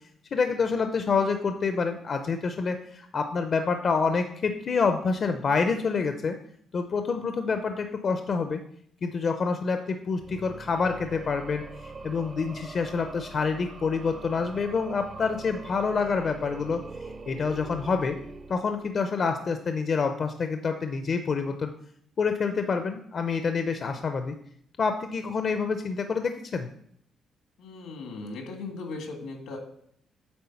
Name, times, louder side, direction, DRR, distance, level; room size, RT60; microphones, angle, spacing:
voice 1, 0.3-6.4 6.7-8.6 9.0-16.8 17.3-18.2 18.5-21.7 22.2-24.3 24.8-26.7, left 5 dB, 50° left, 7 dB, 0.6 m, -27 dB
sound 1, 10.1-19.2, right 3 dB, 40° right, 0.7 m, -43 dB
voice 2, 27.6-29.6, left 3 dB, 85° left, 3 dB, 1.7 m, -38 dB
8.7 x 3.7 x 5.7 m, 0.67 s
cardioid pair, 90°, 0 cm